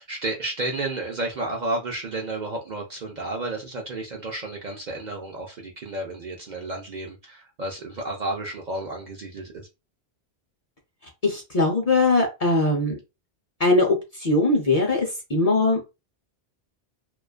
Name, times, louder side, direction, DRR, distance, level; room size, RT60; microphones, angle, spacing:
voice 1, 0.0-9.7, right 2 dB, 55° right, 0.5 m, -32 dB
voice 2, 11.2-13.0 13.6-15.8, left 2 dB, 45° left, 0.6 m, -21 dB
2.4 x 2.2 x 2.3 m
omnidirectional pair, 1.1 m